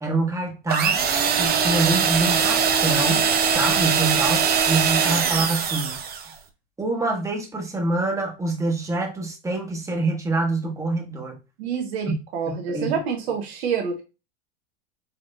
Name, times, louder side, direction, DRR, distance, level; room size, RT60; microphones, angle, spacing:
voice 1, 0.0-3.3 3.5-6.1 6.8-11.4 12.1-12.2 12.7-13.0, right 2 dB, 10° right, 1 dB, 1.5 m, -26 dB
sound 1, 0.7-6.3, right 6 dB, 30° right, 0.8 m, -21 dB
voice 2, 11.6-14.0, right 6 dB, 70° right, 2 dB, 1.2 m, -27 dB
5.6 x 3.5 x 2.5 m, 0.28 s
hypercardioid pair, 105°, 33 cm